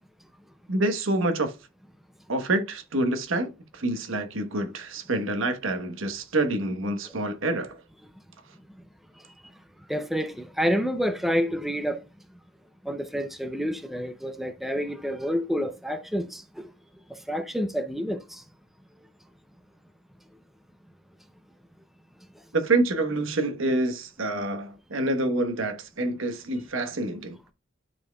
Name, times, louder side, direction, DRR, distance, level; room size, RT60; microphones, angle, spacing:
voice 1, 0.7-1.5 2.3-7.8 22.5-27.4, right 2 dB, 70° right, 1.1 m, -27 dB
voice 2, 9.9-12.0 12.8-16.7 17.1-18.4, equal, ahead, 0.5 m, -28 dB
12.5 x 4.4 x 2.2 m
head